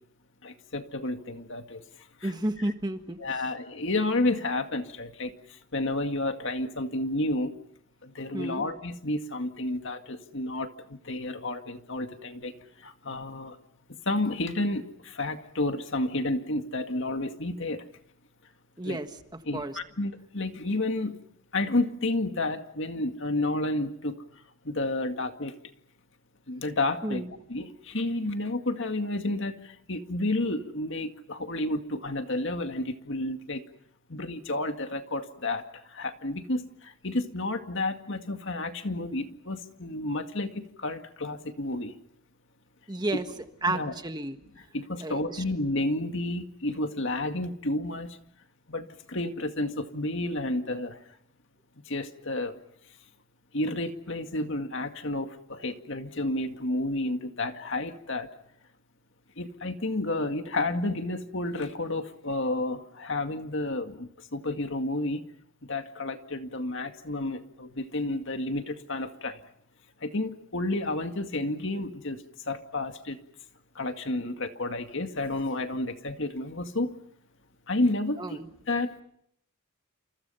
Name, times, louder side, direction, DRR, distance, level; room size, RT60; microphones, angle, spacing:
voice 1, 0.4-1.8 2.2-2.3 2.6-2.7 3.2-7.5 8.0-12.5 12.8-13.6 14.1-17.8 18.8-19.0 19.4-21.2 21.5-24.2 24.6-25.6 26.5-27.2 27.5-33.6 34.1-41.9 43.7-43.9 44.6-48.2 48.7-51.0 51.9-52.6 53.5-58.3 59.4-65.2 65.7-69.4 70.0-73.2 73.8-76.9 77.7-78.4 78.7-79.0, left 2 dB, 60° left, 6 dB, 2.1 m, -31 dB
voice 2, 2.2-3.2 8.3-8.6 18.8-19.1 19.5-19.8 27.0-27.3 42.9-43.2 43.6-44.4 45.0-45.4 78.2-78.5, right 2 dB, 20° right, 7 dB, 1.5 m, -31 dB
29.5 x 28.5 x 5.7 m, 0.71 s
head